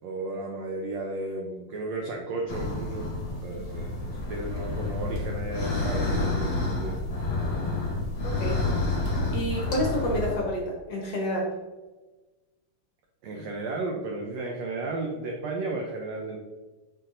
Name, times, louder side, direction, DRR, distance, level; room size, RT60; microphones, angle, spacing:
voice 1, 0.0-3.1 3.4-4.0 4.3-7.0 13.2-16.4, right 2 dB, 90° right, 0 dB, 1.5 m, -34 dB
sound 1, 2.5-10.4, left 2 dB, 45° left, 1.7 m, -29 dB
voice 2, 8.2-8.6 9.3-10.6 10.9-11.5, equal, 65° left, -2 dB, 1.7 m, -29 dB
6.6 x 5.8 x 2.6 m, 1.2 s
omnidirectional pair, 3.9 m